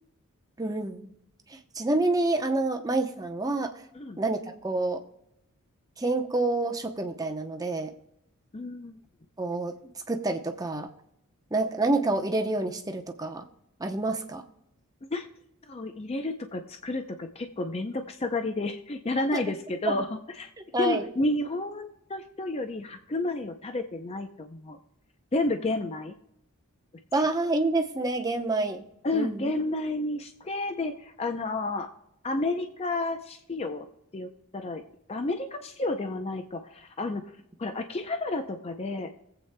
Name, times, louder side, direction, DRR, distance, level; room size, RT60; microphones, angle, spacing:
voice 1, 0.6-1.1 1.5-3.7 4.2-5.0 6.0-7.9 9.4-9.7 10.1-10.9 11.5-13.4 13.8-14.4 19.3-19.4 19.9-20.0 20.7-21.1 27.1-28.8 29.1-29.5, right 2 dB, 15° right, 5 dB, 0.7 m, -28 dB
voice 2, 8.5-9.0 15.1-15.3 15.7-20.5 20.8-24.8 25.3-26.1 29.0-31.9 32.2-33.9 34.1-34.8 35.1-37.2 37.6-39.1, left 2 dB, 25° left, 6 dB, 0.5 m, -31 dB
21.5 x 8.0 x 2.2 m, 0.80 s
head